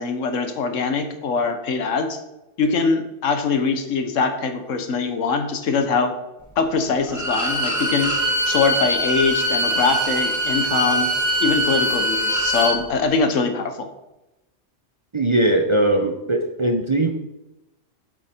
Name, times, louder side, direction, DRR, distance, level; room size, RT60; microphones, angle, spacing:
voice 1, 0.0-2.2 2.6-6.1 6.6-8.2 8.4-11.1 11.4-13.9, left 4 dB, 85° left, 8 dB, 1.3 m, -22 dB
Bowed string instrument, 7.1-12.8, equal, 15° right, 1.3 m, -22 dB
voice 2, 15.1-17.1, right 1 dB, 30° right, 4 dB, 0.6 m, -20 dB
8.0 x 7.7 x 4.3 m, 0.95 s
omnidirectional pair, 1.3 m